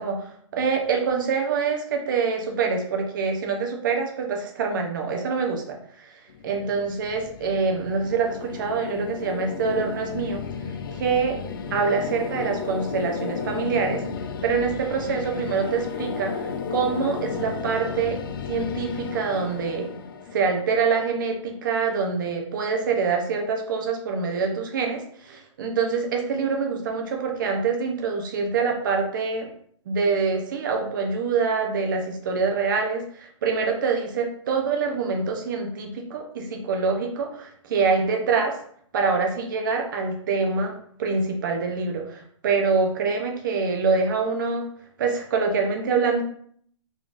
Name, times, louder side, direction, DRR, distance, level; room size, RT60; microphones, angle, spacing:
voice 1, 0.0-10.4 10.9-11.4 11.7-14.0 14.4-19.9 20.3-29.5 29.9-38.6 38.9-44.7 45.0-46.2, right 5 dB, 40° right, 2 dB, 0.7 m, -25 dB
sound 1, 6.3-21.3, left 5 dB, 45° left, 0.4 m, -33 dB
3.8 x 3.7 x 2.5 m, 0.62 s
hypercardioid pair, 170°, 16 cm